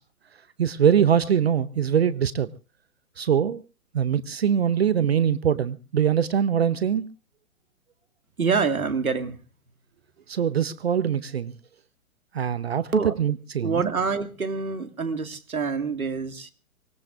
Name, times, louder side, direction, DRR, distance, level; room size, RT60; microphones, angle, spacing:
voice 1, 0.6-2.5 3.2-3.6 3.9-7.1 10.3-11.5 12.3-12.9 13.2-13.9, right 8 dB, 45° right, 16 dB, 0.8 m, -23 dB
voice 2, 8.4-9.4 12.9-13.1 13.6-16.5, right 5 dB, 70° right, 8 dB, 2.0 m, -26 dB
24.5 x 19.5 x 2.5 m, 0.32 s
figure-of-eight pair, 125°, 44 cm